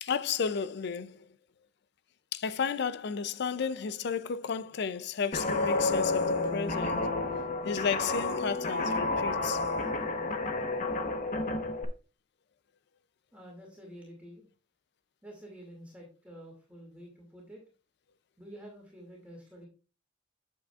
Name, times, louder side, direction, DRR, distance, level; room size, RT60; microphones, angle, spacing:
voice 1, 0.0-1.3 2.3-7.1 7.6-9.7, left 6 dB, 55° left, 0.4 m, -33 dB
Guitar, 5.3-11.8, left 3 dB, 40° left, 0.9 m, -30 dB
voice 2, 13.3-14.5 15.2-17.6 18.4-19.7, equal, 5° right, 2.2 m, -49 dB
8.6 x 7.6 x 2.3 m
head